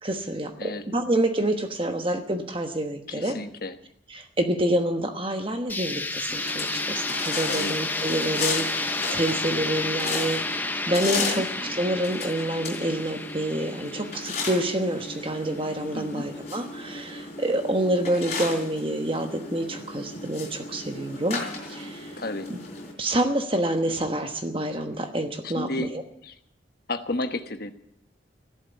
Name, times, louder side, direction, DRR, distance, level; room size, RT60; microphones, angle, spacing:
voice 1, 0.0-3.4 4.1-21.4 21.7-22.2 23.0-26.0, right 1 dB, 30° right, 6 dB, 1.2 m, -27 dB
voice 2, 3.1-3.7 7.5-7.8 11.2-11.5 15.9-16.3 22.2-22.5 23.8-23.9 25.4-25.9 26.2-26.3 26.9-27.7, left 2 dB, 50° left, 8 dB, 1.2 m, -32 dB
sound 1, 5.7-15.5, left 2 dB, 10° left, 0.6 m, -31 dB
sound 2, 6.3-22.9, left 3 dB, 35° left, 4.8 m, -35 dB
14.0 x 12.0 x 8.2 m, 0.70 s
head